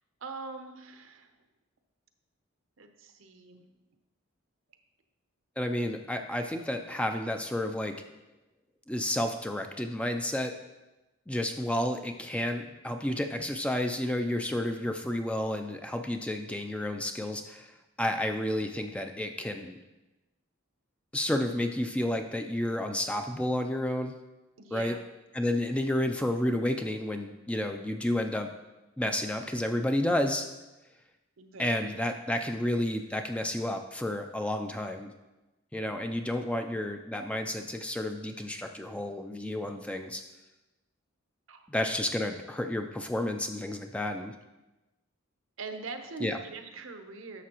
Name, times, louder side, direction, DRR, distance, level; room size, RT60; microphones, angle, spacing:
voice 1, 0.2-1.3 2.8-3.6 24.6-25.0 31.4-32.0 41.5-41.7 42.2-42.3 45.6-47.4, right 3 dB, 70° right, 6 dB, 0.8 m, -42 dB
voice 2, 5.6-8.0 8.9-10.5 11.3-17.7 18.0-19.8 21.1-24.1 24.7-25.0 25.3-28.5 29.0-30.5 31.6-35.1 35.7-40.2 41.7-44.3 46.2-46.4, left 1 dB, 5° left, 5 dB, 0.4 m, -31 dB
11.0 x 6.7 x 3.0 m, 1.0 s
head